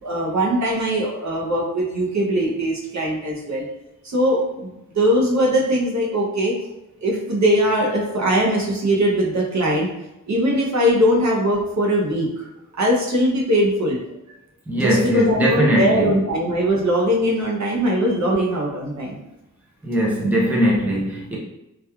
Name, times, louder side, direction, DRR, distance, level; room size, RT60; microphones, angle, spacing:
voice 1, 0.0-3.7 4.0-4.7 4.9-6.6 7.0-9.9 10.3-12.5 12.8-14.0 14.8-19.2, equal, 60° right, -2 dB, 0.6 m, -20 dB
voice 2, 14.7-16.2 19.8-21.4, equal, 5° right, -4 dB, 0.6 m, -20 dB
2.9 x 2.3 x 2.2 m, 0.90 s
wide cardioid pair, 95°, 32 cm